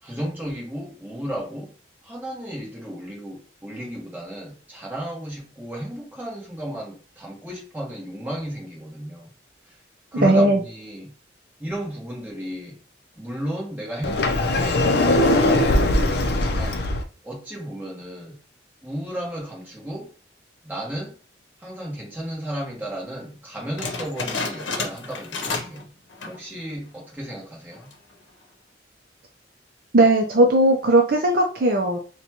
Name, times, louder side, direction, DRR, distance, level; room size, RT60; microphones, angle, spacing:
voice 1, 0.0-1.7 2.0-9.3 9.7-9.8 10.1-11.1 11.6-12.8 13.2-16.8 17.2-18.4 18.8-20.1 20.6-21.1 21.6-25.8 26.3-27.9, equal, 10° right, 1.1 m, -34 dB
voice 2, 10.2-10.6 29.9-32.0, right 1 dB, 50° right, 0.5 m, -17 dB
Sliding door, 14.0-17.0, left 1 dB, 55° left, 0.5 m, -20 dB
sound 1, 23.8-25.8 26.1-26.5 27.0-27.1 27.7-28.1, left 3 dB, 80° left, 0.8 m, -30 dB
4.0 x 2.2 x 2.9 m
head